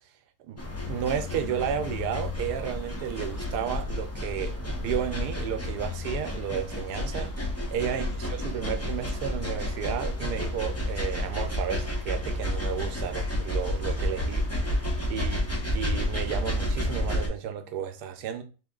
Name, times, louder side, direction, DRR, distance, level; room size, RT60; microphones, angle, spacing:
voice 1, 0.5-14.4 15.1-15.5 15.7-18.4, right 8 dB, 85° right, 1.2 m, -33 dB
sound 1, 0.6-17.3, left 1 dB, 25° left, 0.3 m, -30 dB
4.1 x 2.9 x 3.7 m
omnidirectional pair, 1.7 m